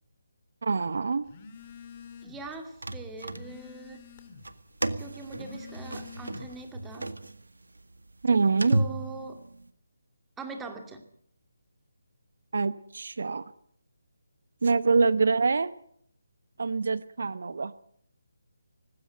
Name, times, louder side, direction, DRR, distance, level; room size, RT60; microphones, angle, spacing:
voice 1, 0.6-1.3 8.2-8.8 12.5-13.4 14.6-15.7 16.6-17.7, right 4 dB, 60° right, 16 dB, 0.9 m, -25 dB
Telephone, 1.3-2.5 2.9-4.6 5.2-6.7, left 6 dB, 30° left, 2.5 m, -47 dB
voice 2, 2.2-4.0 5.0-7.2 8.7-9.4 10.4-11.0, right 3 dB, 10° right, 5 dB, 2.5 m, -42 dB
sound 1, 2.4-3.9 4.4-9.7, right 2 dB, 80° right, 1.8 m, -33 dB
19.5 x 16.5 x 9.0 m, 0.66 s
figure-of-eight pair, 155°, 0 cm